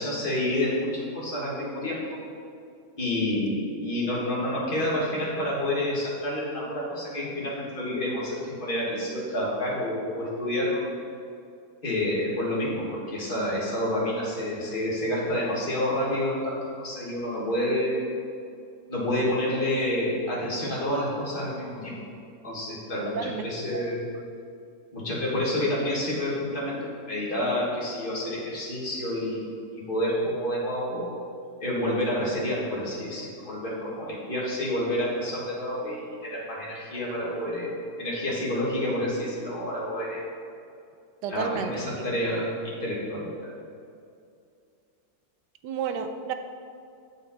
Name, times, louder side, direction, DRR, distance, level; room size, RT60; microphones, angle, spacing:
voice 1, 0.0-2.2 3.0-10.9 11.8-18.1 18.9-22.0 22.4-24.1 24.9-31.2 31.6-40.3 41.3-43.5, left 1 dB, 30° left, -6 dB, 2.1 m, -29 dB
voice 2, 23.2-23.8 41.2-41.7 45.6-46.3, right 7 dB, 80° right, 8 dB, 1.2 m, -31 dB
7.6 x 7.2 x 4.2 m, 2.4 s
omnidirectional pair, 1.9 m